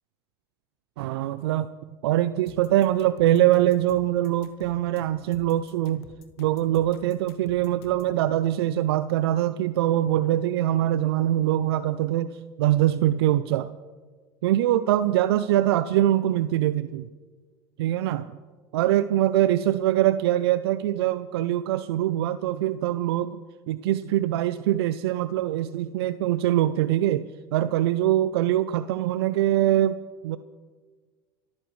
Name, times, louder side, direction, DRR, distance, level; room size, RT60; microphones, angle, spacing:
voice 1, 1.0-1.7 2.0-6.1 6.4-12.3 12.6-13.7 14.4-17.1 17.8-18.4 18.7-23.4 23.7-30.0 30.2-30.4, right 13 dB, 80° right, 13 dB, 0.5 m, -23 dB
sound 1, 2.5-8.1, left 7 dB, 75° left, 1.5 m, -49 dB
29.0 x 14.0 x 3.2 m, 1.5 s
hypercardioid pair, 85°, 13 cm